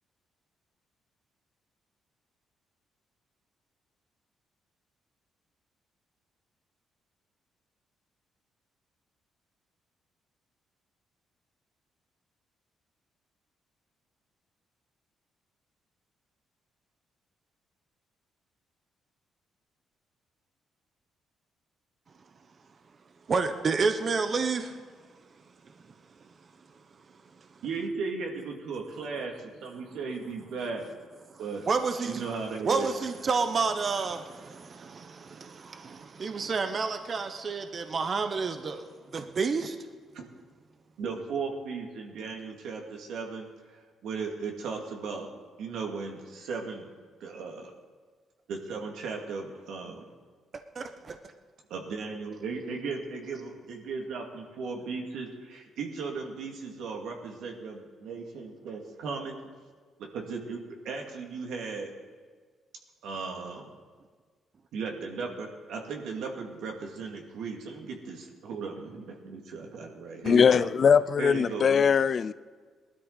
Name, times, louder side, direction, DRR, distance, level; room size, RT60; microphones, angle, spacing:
voice 1, 23.3-24.8 31.7-32.2 32.6-38.8 39.1-39.8 50.7-51.2, right 4 dB, 45° right, 1.0 m, -29 dB
voice 2, 27.6-30.9 31.4-31.6 32.0-32.9 40.1-40.2 41.0-43.5 44.0-45.3 45.6-46.9 47.2-47.7 48.5-50.0 51.7-59.5 60.1-61.9 63.0-63.6 64.7-70.7 71.2-71.8, right 4 dB, 80° right, 2.4 m, -36 dB
voice 3, 70.2-72.3, left 6 dB, 50° left, 0.4 m, -21 dB
19.5 x 12.5 x 4.1 m
cardioid pair, 90°, 0 cm